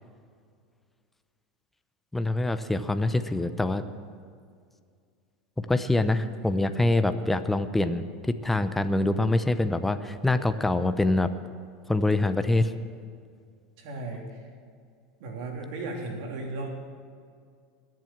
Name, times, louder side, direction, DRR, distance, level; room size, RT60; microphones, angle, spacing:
voice 1, 2.1-3.8 5.7-11.3 11.9-12.7, left 2 dB, 5° left, 10 dB, 0.7 m, -25 dB
voice 2, 13.8-14.4 15.2-16.7, right 2 dB, 65° right, 1 dB, 3.6 m, -35 dB
21.5 x 7.7 x 7.3 m, 2.2 s
supercardioid pair, 120°, 3 cm